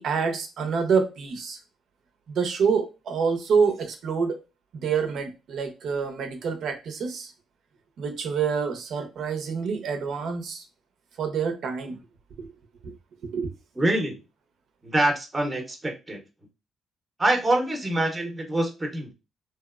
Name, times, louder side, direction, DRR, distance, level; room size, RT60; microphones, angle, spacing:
voice 1, 0.0-1.6 2.3-4.4 4.7-7.3 8.0-10.6 11.2-12.0 12.4-12.5 12.8-12.9 13.2-13.5, right 5 dB, 70° right, 0.6 m, -27 dB
voice 2, 13.8-14.2 14.8-16.2 17.2-19.1, right 1 dB, 20° right, 0.7 m, -25 dB
2.8 x 2.0 x 2.3 m
cardioid pair, 90°, 0 cm